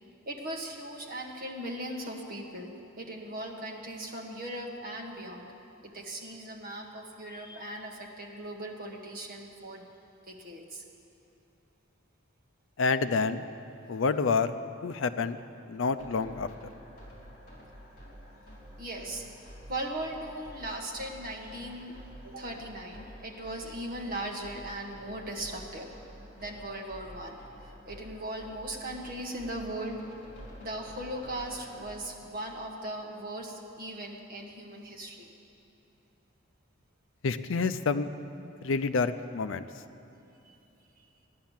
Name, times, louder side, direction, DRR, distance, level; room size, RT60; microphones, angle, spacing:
voice 1, 0.3-2.7 3.0-5.5 5.8-9.9 10.3-10.8 18.8-19.2 19.7-21.9 22.2-25.9 26.4-27.4 27.6-30.0 30.6-35.3 40.4-40.5, right 1 dB, 45° right, 0 dB, 1.7 m, -38 dB
voice 2, 12.8-13.4 13.9-14.5 14.8-15.4 15.7-16.5 37.2-38.1 38.6-39.7, left 4 dB, 65° left, 12 dB, 0.5 m, -28 dB
sound 1, 16.0-31.8, equal, 45° left, 3.8 m, -50 dB
15.0 x 10.5 x 7.3 m, 2.9 s
head